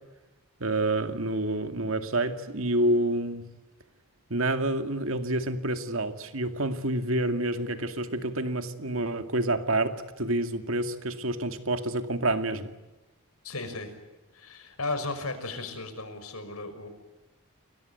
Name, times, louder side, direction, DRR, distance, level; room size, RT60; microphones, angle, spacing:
voice 1, 0.6-3.5 4.3-12.7, right 1 dB, 65° right, 2.2 m, -28 dB
voice 2, 13.4-13.9 14.3-16.9, left 3 dB, 85° left, 5.8 m, -35 dB
29.5 x 22.0 x 9.2 m
head